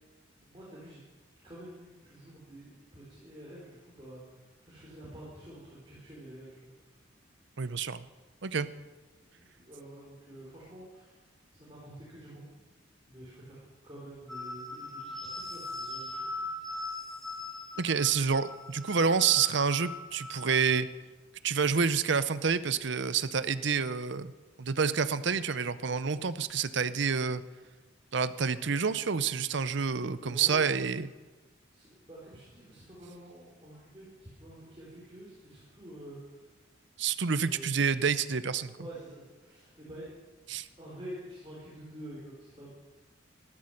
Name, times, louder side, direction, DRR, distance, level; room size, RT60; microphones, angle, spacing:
voice 1, 0.4-1.0 1.4-6.7 8.6-8.7 9.3-11.2 11.5-12.5 13.0-16.9 30.2-30.7 31.7-36.4 37.4-37.7 38.7-40.1 40.8-42.7, right 1 dB, 25° right, -7 dB, 4.0 m, -48 dB
voice 2, 7.6-8.0 8.4-8.7 17.8-20.9 21.4-24.3 24.6-27.4 28.1-31.1 37.0-38.7 40.5-40.7, right 6 dB, 60° right, 14 dB, 0.6 m, -28 dB
sound 1, 14.3-20.8, left 2 dB, ahead, 3.3 m, -40 dB
14.0 x 12.5 x 6.5 m, 1.3 s
head